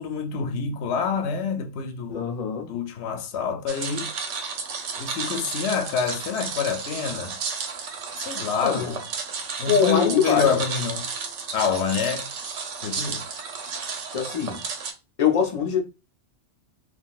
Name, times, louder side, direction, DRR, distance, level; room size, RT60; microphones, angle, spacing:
voice 1, 0.0-2.2 2.7-4.1 5.0-7.4 8.2-9.0 9.6-11.1 11.5-12.3 12.8-13.2, left 6 dB, 75° left, 0.9 m, -27 dB
voice 2, 2.1-2.7 8.6-8.9 9.7-10.6 14.1-14.6 15.2-15.8, left 7 dB, 45° left, 0.6 m, -23 dB
sound 1, 3.7-14.9, right 5 dB, 80° right, 1.0 m, -33 dB
3.7 x 2.4 x 2.4 m
omnidirectional pair, 1.2 m